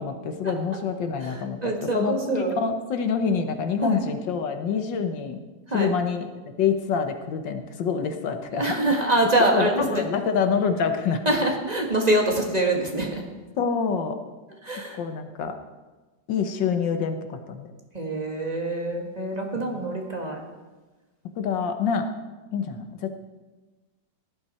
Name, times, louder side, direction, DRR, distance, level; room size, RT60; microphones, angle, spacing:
voice 1, 0.0-5.4 5.7-6.3 6.6-8.8 9.3-11.2 13.6-14.2 15.0-15.5 16.3-17.7 19.6-19.9 21.4-22.1 22.5-23.1, left 6 dB, 90° left, 7 dB, 1.8 m, -26 dB
voice 2, 1.2-2.5 3.8-4.0 5.7-5.9 8.5-10.0 11.3-13.2 14.6-15.0 17.9-20.4, right 1 dB, 20° right, 0 dB, 1.9 m, -25 dB
16.5 x 11.5 x 4.3 m, 1.2 s
omnidirectional pair, 1.9 m